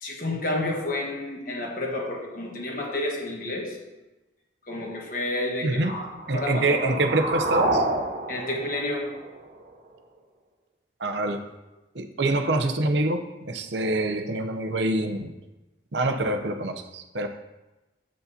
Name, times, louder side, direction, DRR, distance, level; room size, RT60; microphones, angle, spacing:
voice 1, 0.0-3.8 4.7-6.9 8.3-9.2, left 1 dB, 50° left, 0 dB, 1.3 m, -30 dB
sound 1, 5.9-9.9, right 2 dB, 50° right, 0.8 m, -29 dB
voice 2, 6.3-7.9 11.0-11.4 11.9-15.3 15.9-17.3, right 2 dB, 85° right, 7 dB, 0.7 m, -25 dB
8.1 x 7.5 x 2.8 m, 1.1 s
head